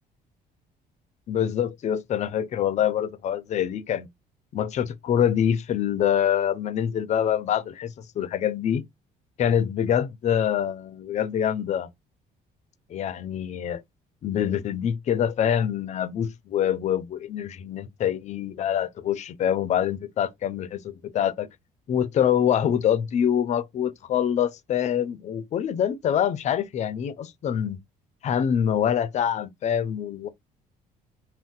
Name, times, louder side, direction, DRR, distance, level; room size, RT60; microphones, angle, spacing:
voice 1, 1.3-4.1 4.5-8.8 9.4-11.9 12.9-13.8 14.2-21.5 21.9-27.8 28.2-30.3, left 9 dB, 45° left, 0.4 m, -25 dB
2.6 x 2.1 x 3.8 m
cardioid pair, 110°, 17 cm